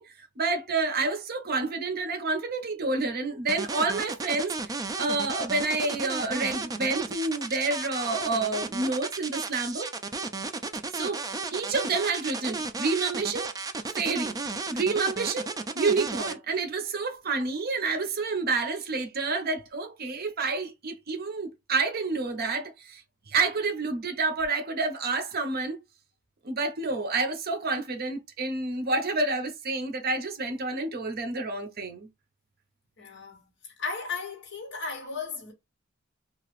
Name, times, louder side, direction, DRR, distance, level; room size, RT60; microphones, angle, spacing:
voice 1, 0.0-9.9 10.9-13.5 13.9-14.4 14.7-25.8 26.4-32.1, right 3 dB, 50° right, 0.7 m, -29 dB
sound 1, 3.5-16.3, right 3 dB, 20° right, 0.4 m, -33 dB
voice 2, 33.0-35.5, left 4 dB, 60° left, 1.1 m, -36 dB
2.9 x 2.4 x 3.1 m
head